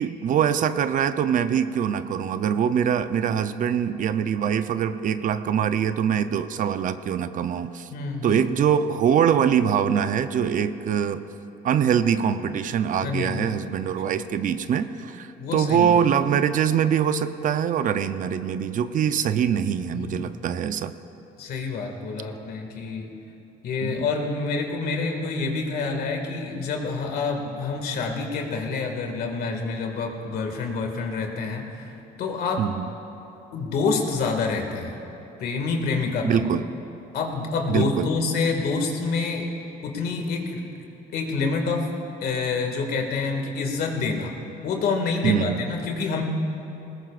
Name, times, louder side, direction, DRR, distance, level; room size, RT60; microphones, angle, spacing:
voice 1, 0.0-7.9 8.2-11.2 11.6-20.9 23.8-24.1 32.6-32.9 36.2-36.6 37.7-38.1 45.2-45.7, right 8 dB, 50° right, 11 dB, 0.6 m, -23 dB
voice 2, 7.9-8.4 13.0-13.5 15.4-15.9 19.9-20.3 21.4-23.1 23.6-31.9 32.2-32.6 33.5-35.0 35.4-36.5 37.1-39.5 39.8-40.6 41.1-41.9 42.2-44.3 44.6-46.2, left 4 dB, 65° left, 3 dB, 2.0 m, -27 dB
21.0 x 19.5 x 2.5 m, 2.9 s
cardioid pair, 110°, 17 cm